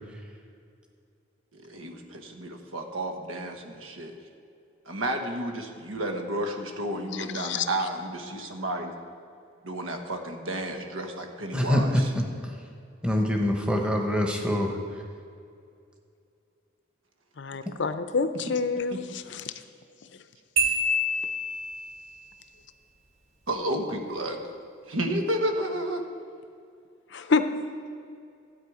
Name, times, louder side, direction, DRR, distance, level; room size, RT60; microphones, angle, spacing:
voice 1, 1.5-4.1 4.9-8.9 9.6-12.1 18.9-19.0 23.5-24.4 24.9-26.0, right 1 dB, 90° right, 4 dB, 1.3 m, -31 dB
voice 2, 7.3-7.7 17.4-19.4 27.1-27.4, left 4 dB, 60° left, 10 dB, 0.6 m, -27 dB
voice 3, 11.5-12.2 13.0-14.7, equal, 5° right, 2 dB, 1.0 m, -24 dB
Marimba xylophone, 20.6-22.0, equal, 30° right, 1.6 m, -26 dB
13.0 x 8.7 x 4.9 m, 2.4 s
head